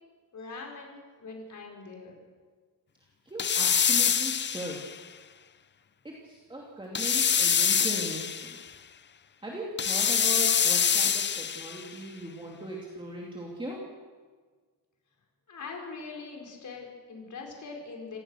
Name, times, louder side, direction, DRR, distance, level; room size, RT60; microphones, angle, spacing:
voice 1, 0.3-2.1 15.5-18.2, left 4 dB, 45° left, 1 dB, 5.0 m, -42 dB
voice 2, 3.2-4.8 6.0-8.6 9.4-13.9, right 1 dB, 10° right, -3 dB, 2.7 m, -38 dB
sound 1, 3.4-5.0 6.9-8.6 9.8-11.8, left 7 dB, 25° left, 0.5 m, -25 dB
27.0 x 18.0 x 6.5 m, 1.5 s
wide cardioid pair, 175°, 41 cm